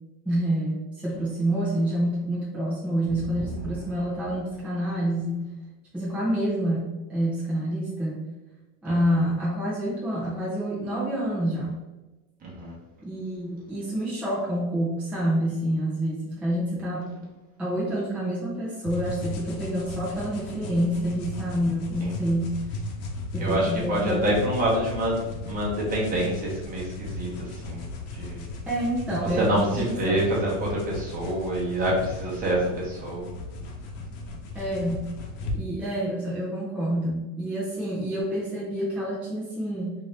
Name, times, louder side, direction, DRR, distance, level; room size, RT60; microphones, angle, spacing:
voice 1, 0.3-5.5 5.9-8.2 8.8-11.7 13.0-17.1 17.6-22.6 23.3-24.3 28.7-30.2 34.5-35.1 35.5-40.0, right 1 dB, 5° right, -7 dB, 0.6 m, -28 dB
voice 2, 12.4-12.7 22.0-22.1 23.4-28.4 29.2-33.3, right 1 dB, 20° right, -5 dB, 1.1 m, -27 dB
sound 1, 18.8-35.6, left 2 dB, 80° left, 0.8 m, -36 dB
2.8 x 2.6 x 3.2 m, 1.1 s
supercardioid pair, 135°, 39 cm